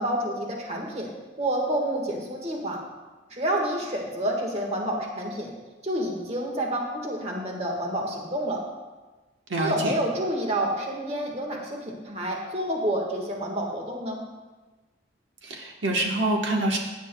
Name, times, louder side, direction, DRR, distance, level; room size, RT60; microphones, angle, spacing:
voice 1, 0.0-2.8 3.3-5.5 5.8-8.6 9.6-14.2, right 1 dB, 35° right, 1 dB, 1.5 m, -29 dB
voice 2, 9.5-9.9 15.4-16.8, right 2 dB, 75° right, 1 dB, 1.1 m, -26 dB
16.0 x 9.4 x 2.2 m, 1.2 s
head